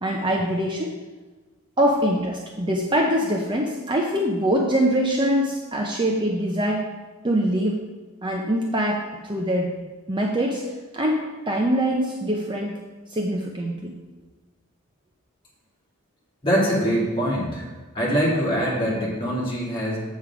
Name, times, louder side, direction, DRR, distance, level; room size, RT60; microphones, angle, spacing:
voice 1, 0.0-0.9 1.8-6.9 7.2-7.8 8.2-9.8 10.1-12.8 13.1-14.0, equal, 20° right, 0 dB, 0.7 m, -23 dB
voice 2, 16.4-17.7 17.9-20.0, equal, 25° left, -6 dB, 2.9 m, -23 dB
7.5 x 7.5 x 4.8 m, 1.3 s
head